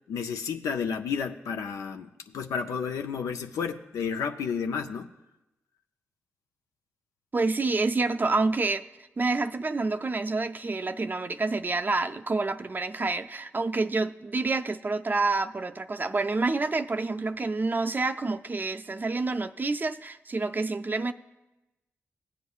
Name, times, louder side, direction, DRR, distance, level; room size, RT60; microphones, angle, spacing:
voice 1, 0.1-5.1, left 6 dB, 85° left, 0.4 m, -31 dB
voice 2, 7.3-8.8 9.2-21.1, right 3 dB, 35° right, 0.4 m, -28 dB
16.5 x 8.0 x 2.3 m
supercardioid pair, 45°, 5 cm